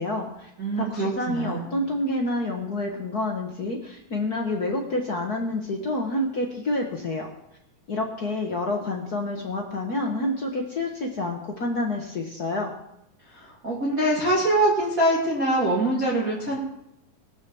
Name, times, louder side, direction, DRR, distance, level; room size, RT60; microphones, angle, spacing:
voice 1, 0.0-0.5 0.8-7.3 7.9-12.7, left 2 dB, 75° left, 1 dB, 0.8 m, -28 dB
voice 2, 0.6-1.8 13.3-16.6, right 1 dB, 30° right, -4 dB, 2.2 m, -24 dB
18.5 x 6.9 x 7.0 m, 0.83 s
omnidirectional pair, 4.0 m